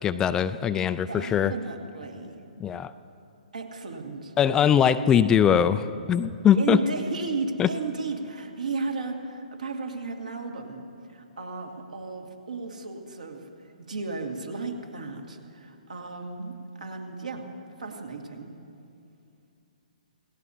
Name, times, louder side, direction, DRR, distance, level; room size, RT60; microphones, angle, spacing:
voice 1, 0.0-1.5 2.6-2.9 4.4-6.8 7.6-7.7, left 8 dB, 15° left, 12 dB, 0.3 m, -21 dB
voice 2, 1.1-2.4 3.5-4.3 6.6-17.4 17.8-18.5, right 3 dB, 65° right, 3 dB, 2.2 m, -34 dB
28.0 x 17.5 x 2.8 m, 2.5 s
figure-of-eight pair, 125°, 4 cm